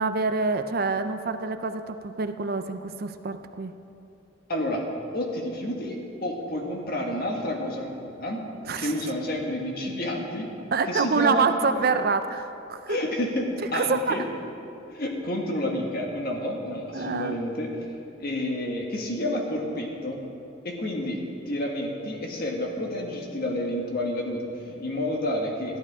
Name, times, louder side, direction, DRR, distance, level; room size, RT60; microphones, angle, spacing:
voice 1, 0.0-3.7 8.7-8.9 10.7-13.0 13.7-14.2 16.9-17.4, right 4 dB, 50° right, 9 dB, 0.5 m, -26 dB
voice 2, 4.5-4.8 5.1-8.4 8.8-10.5 10.9-11.8 12.9-14.2 14.9-17.7 18.2-20.2 20.6-25.8, left 1 dB, 50° left, 0 dB, 1.8 m, -30 dB
13.5 x 11.5 x 4.9 m, 2.7 s
head